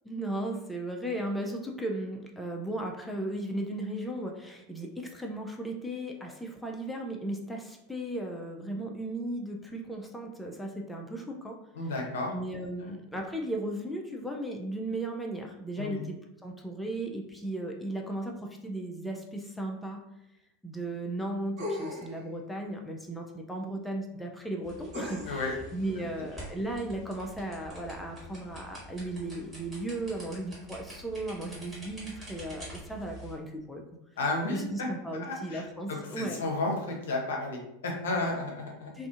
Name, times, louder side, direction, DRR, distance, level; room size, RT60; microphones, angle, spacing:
voice 1, 0.0-11.6 12.3-16.2 16.4-20.0 20.6-33.8 34.5-36.4 39.0-39.1, right 1 dB, 5° left, 1 dB, 0.3 m, -36 dB
voice 2, 11.7-12.3 12.8-12.9 15.8-16.0 25.3-25.5 34.2-34.9 35.2-38.9, left 2 dB, 70° left, 0 dB, 0.5 m, -32 dB
sound 1, 21.6-22.2 24.9-25.5 26.4-26.5, left 1 dB, 50° right, 1.1 m, -37 dB
sound 2, 24.6-33.3, right 1 dB, 15° right, 1.4 m, -47 dB
2.4 x 2.4 x 2.4 m, 0.86 s
figure-of-eight pair, 85°, 0 cm